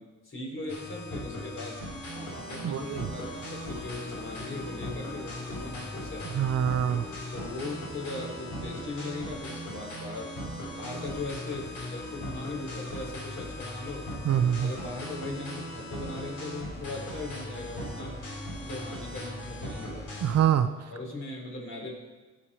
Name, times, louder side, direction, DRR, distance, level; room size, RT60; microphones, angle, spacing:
voice 1, 0.0-1.7 2.1-6.5 7.3-10.3 10.8-14.0 14.6-18.2 18.6-20.1 20.9-21.9, left 2 dB, 45° left, -2 dB, 3.9 m, -39 dB
sound 1, 0.7-20.4, left 1 dB, 75° left, 3.8 m, -39 dB
sound 2, 2.3-8.5, left 1 dB, 60° left, 2.5 m, -47 dB
voice 2, 2.6-3.1 6.3-7.0 14.2-14.7 20.2-20.7, right 9 dB, 55° right, 9 dB, 0.7 m, -25 dB
16.0 x 6.2 x 4.2 m, 1.2 s
cardioid pair, 90°, 30 cm